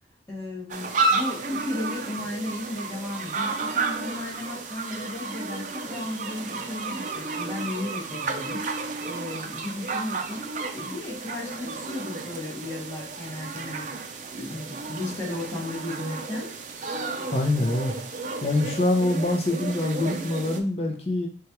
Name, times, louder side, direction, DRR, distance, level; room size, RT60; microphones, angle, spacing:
voice 1, 0.3-8.6 9.0-10.5 10.7-13.9 14.3-16.5, left 2 dB, 15° left, -5 dB, 1.2 m, -35 dB
sound 1, 0.7-20.6, right 3 dB, 45° right, 0.5 m, -32 dB
voice 2, 17.3-17.9 18.4-21.3, left 2 dB, 35° left, 0 dB, 0.6 m, -24 dB
6.0 x 2.4 x 3.0 m, 0.40 s
head